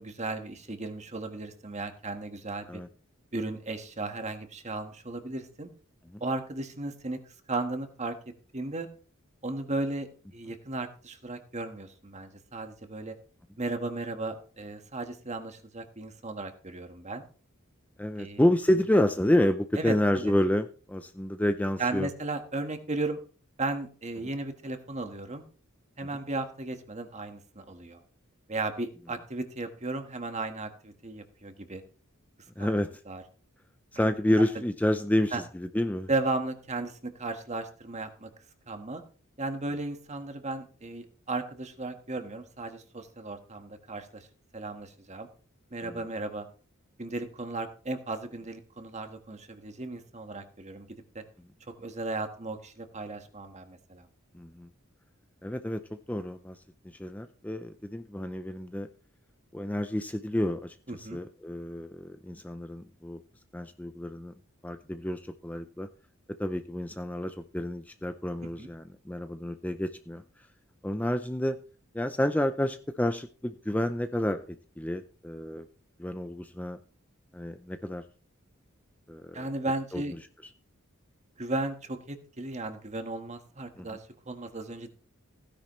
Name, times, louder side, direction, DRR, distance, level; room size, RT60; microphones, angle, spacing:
voice 1, 0.0-2.8 3.3-5.7 6.2-7.2 7.5-8.2 8.5-8.9 9.4-10.1 10.3-13.2 13.6-17.2 18.2-18.4 18.7-18.8 19.7-20.3 21.8-23.2 23.6-25.4 26.0-28.0 28.5-31.8 32.6-32.7 33.1-33.2 35.3-35.4 36.1-38.3 38.7-39.0 39.4-44.3 44.5-45.3 45.7-46.5 47.0-50.9 51.1-51.2 51.8-54.1 60.9-61.2 68.4-68.7 79.3-80.1 81.4-84.9, right 2 dB, 35° right, 7 dB, 1.5 m, -35 dB
voice 2, 18.0-22.1 32.6-32.9 33.9-36.1 45.8-46.0 54.3-54.7 55.4-56.6 57.0-58.9 59.5-63.2 63.5-64.3 64.6-65.9 66.4-70.2 70.8-71.6 71.9-75.7 76.0-76.8 77.3-78.0 79.1-79.4 79.9-80.0 83.8-83.9, left 1 dB, 5° left, 8 dB, 0.5 m, -29 dB
16.0 x 10.0 x 3.2 m, 0.40 s
head